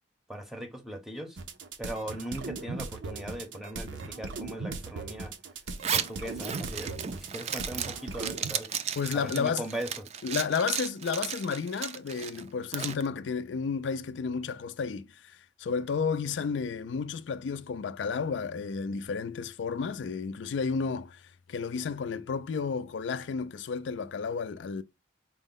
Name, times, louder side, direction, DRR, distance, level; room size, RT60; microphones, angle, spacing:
voice 1, 0.3-1.4 1.8-5.3 5.9-8.7 9.1-10.1, right 1 dB, ahead, 0.6 m, -39 dB
sound 1, 1.4-8.5, right 3 dB, 90° right, 0.6 m, -38 dB
Zipper (clothing), 5.7-13.0, right 8 dB, 35° right, 0.3 m, -34 dB
voice 2, 9.0-9.6 10.2-21.2 21.5-24.8, left 5 dB, 75° left, 0.4 m, -32 dB
4.4 x 2.1 x 3.7 m
head